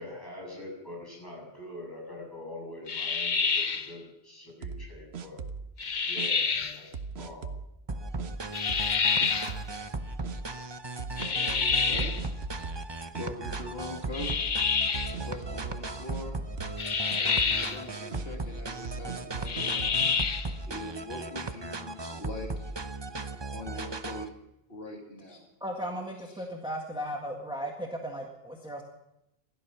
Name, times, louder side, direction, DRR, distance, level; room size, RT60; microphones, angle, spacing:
voice 1, 0.0-5.4 6.1-7.5, left 1 dB, 20° left, -2 dB, 7.5 m, -44 dB
sound 1, 2.9-3.9 5.8-6.8 8.5-9.6 11.2-12.2 14.1-15.2 16.8-17.8 19.4-20.5, left 6 dB, 50° left, 0.9 m, -28 dB
sound 2, 4.6-5.7 6.2-6.3 6.9-7.7 8.2-8.3 8.7-9.0 9.2-9.7 10.2-10.4 11.0-12.9 13.1-13.9 14.2-14.3 14.9-16.3 16.6-16.9 17.1-17.6 18.1-18.3 18.8-20.2, right 5 dB, 85° right, 1.2 m, -39 dB
sound 3, 7.9-24.3, right 2 dB, 30° right, 0.8 m, -37 dB
voice 2, 11.0-12.1 13.2-14.5 15.2-16.4 17.2-20.4 20.7-22.7 23.5-24.3 24.7-25.4 26.3-26.5, left 2 dB, 70° left, 1 dB, 2.2 m, -42 dB
voice 3, 25.6-28.8, equal, 5° right, 1 dB, 1.6 m, -36 dB
16.0 x 12.5 x 6.9 m, 0.88 s
omnidirectional pair, 1.0 m